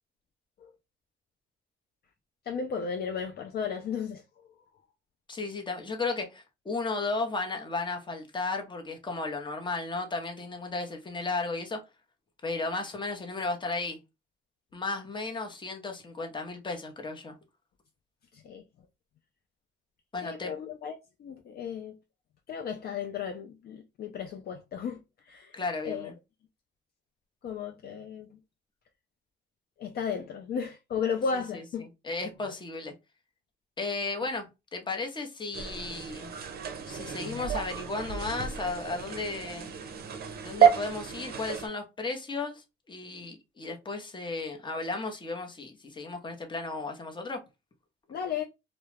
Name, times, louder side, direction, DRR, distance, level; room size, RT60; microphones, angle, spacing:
voice 1, 2.5-4.2 18.3-18.6 20.2-22.0 22.5-25.6 25.8-26.1 27.4-28.3 29.8-31.8 37.0-37.4 48.1-48.4, left 6 dB, 50° left, 0.4 m, -34 dB
voice 2, 5.3-11.8 12.4-14.0 14.7-17.4 20.1-20.5 25.5-26.1 31.3-31.6 32.0-32.9 33.8-36.3 36.9-39.7 40.4-47.4, left 3 dB, 25° left, 0.7 m, -34 dB
sound 1, 35.5-41.7, right 8 dB, 50° right, 0.5 m, -30 dB
2.2 x 2.0 x 3.1 m
cardioid pair, 90°, 20 cm